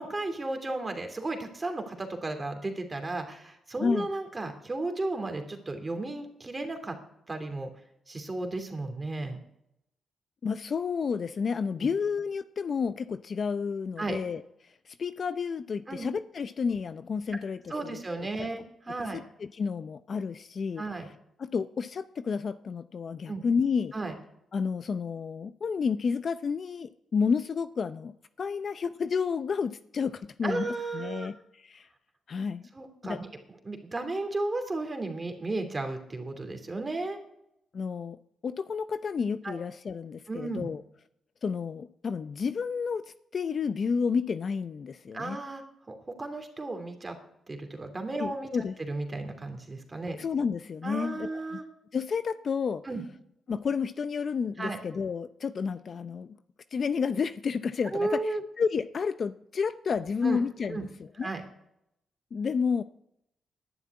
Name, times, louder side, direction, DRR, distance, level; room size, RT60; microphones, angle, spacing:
voice 1, 0.0-6.9 7.3-7.7 8.1-9.4 11.8-11.9 14.0-14.2 15.9-16.1 17.3-17.4 17.7-19.2 20.8-21.1 23.3-23.4 23.9-24.1 30.4-31.3 32.7-33.3 33.6-37.2 39.4-39.6 40.3-40.7 45.1-47.2 47.5-50.2 50.8-51.6 52.8-53.0 54.6-54.8 57.9-58.4 60.2-60.4 60.7-60.8 61.2-61.4, right 2 dB, 25° right, 6 dB, 2.9 m, -34 dB
voice 2, 10.4-18.0 18.4-18.5 19.0-20.8 21.4-23.9 24.5-30.7 30.9-31.9 32.3-32.7 33.0-33.2 37.7-38.2 38.4-40.8 41.4-45.4 48.2-48.7 50.2-51.6 51.9-52.8 53.5-56.4 56.7-60.9 61.2-61.3 62.3-62.8, left 5 dB, 55° left, 12 dB, 0.6 m, -31 dB
11.0 x 9.5 x 9.6 m, 0.80 s
cardioid pair, 75°, 0 cm